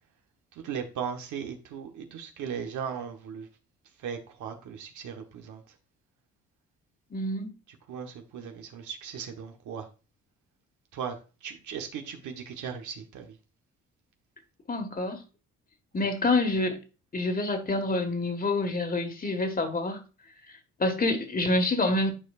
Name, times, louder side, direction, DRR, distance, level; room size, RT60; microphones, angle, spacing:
voice 1, 0.6-3.5 4.0-5.6 7.9-9.9 10.9-11.2 11.4-13.4, right 7 dB, 80° right, 1.3 m, -37 dB
voice 2, 7.1-7.5 14.7-15.2 15.9-16.8 17.1-20.0 20.8-22.1, left 2 dB, 30° left, 1.7 m, -27 dB
11.5 x 4.7 x 2.5 m
cardioid pair, 90°, 30 cm